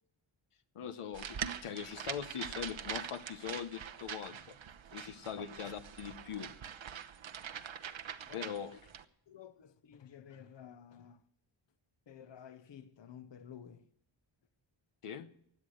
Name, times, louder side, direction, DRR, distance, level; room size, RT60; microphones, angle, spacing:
voice 1, 0.7-4.6 4.9-6.5 8.3-8.8 15.0-15.3, left 8 dB, 90° left, 1.1 m, -42 dB
sound 1, 1.1-9.0, right 8 dB, 65° right, 1.0 m, -44 dB
voice 2, 5.0-5.7 8.2-8.5 9.3-11.2 12.1-13.9, left 8 dB, 60° left, 1.0 m, -53 dB
16.5 x 10.0 x 6.5 m
wide cardioid pair, 120°, 49 cm